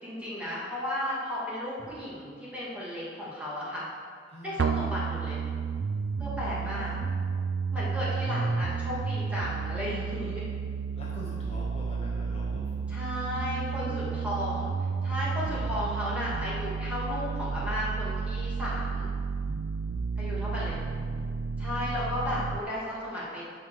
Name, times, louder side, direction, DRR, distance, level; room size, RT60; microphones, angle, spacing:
voice 1, 0.0-3.9 4.4-5.4 6.2-6.9 7.7-10.4 12.9-14.7 15.0-19.1 20.2-20.8 21.6-23.4, left 1 dB, 5° right, -8 dB, 2.4 m, -34 dB
sound 1, 4.6-22.6, right 5 dB, 70° right, 0.4 m, -32 dB
voice 2, 6.6-7.1 11.0-12.8 13.8-14.3 20.4-21.3 22.3-22.4, equal, 35° left, -6 dB, 1.2 m, -45 dB
9.0 x 5.9 x 4.9 m, 2.1 s
head